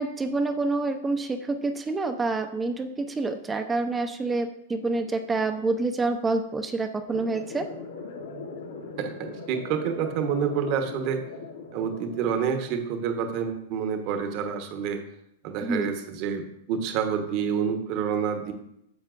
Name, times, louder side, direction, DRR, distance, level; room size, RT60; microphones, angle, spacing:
voice 1, 0.0-7.7 15.6-15.9, right 3 dB, 15° right, 7 dB, 0.7 m, -27 dB
sound 1, 7.1-13.1, left 4 dB, 80° left, 2.4 m, -40 dB
voice 2, 9.5-11.2 11.7-15.0 15.4-18.5, right 7 dB, 50° right, 6 dB, 1.2 m, -28 dB
9.8 x 7.2 x 2.6 m, 0.79 s
hypercardioid pair, 105°, 0 cm